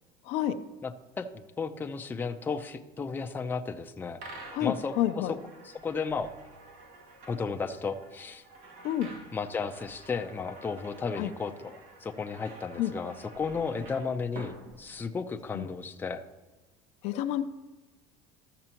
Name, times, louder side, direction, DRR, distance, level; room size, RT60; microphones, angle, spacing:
voice 1, 0.3-0.6 4.5-5.4 8.8-9.1 11.2-11.3 12.8-12.9 15.5-15.7 17.0-17.4, left 11 dB, 65° left, 9 dB, 0.6 m, -29 dB
voice 2, 0.8-4.2 4.6-5.4 5.6-6.3 7.3-8.4 9.3-11.8 12.0-16.2, left 5 dB, 15° left, 4 dB, 0.6 m, -34 dB
sound 1, 4.2-15.4, right 3 dB, 65° right, 1.7 m, -49 dB
14.0 x 6.7 x 2.9 m, 1.2 s
supercardioid pair, 110°, 12 cm